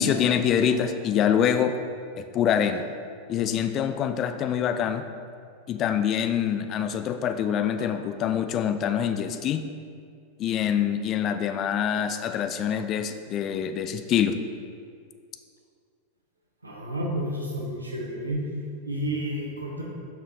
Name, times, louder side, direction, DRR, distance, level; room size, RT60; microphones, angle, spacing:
voice 1, 0.0-1.8 2.2-2.9 3.3-5.0 5.7-9.7 10.4-14.4, left 8 dB, 35° left, 8 dB, 0.3 m, -25 dB
voice 2, 16.6-18.4 18.8-19.8, right 1 dB, 80° right, -2 dB, 1.0 m, -30 dB
5.7 x 4.3 x 4.1 m, 2.2 s
figure-of-eight pair, 90°, 0 cm